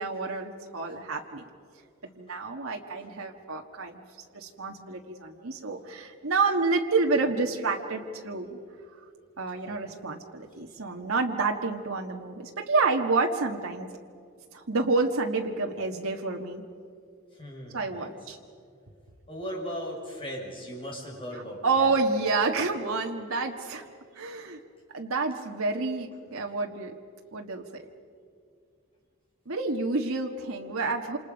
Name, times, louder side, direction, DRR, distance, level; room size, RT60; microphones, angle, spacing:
voice 1, 0.0-1.4 2.2-4.0 4.3-8.6 9.4-13.9 14.5-16.6 17.7-18.4 21.6-23.8 24.1-24.6 24.9-26.9 27.3-27.8 29.5-31.2, right 3 dB, 75° right, 1 dB, 1.6 m, -29 dB
voice 2, 17.3-18.1 19.3-21.9 22.2-22.3, equal, 25° left, -2 dB, 5.5 m, -38 dB
27.5 x 27.5 x 5.2 m, 2.3 s
head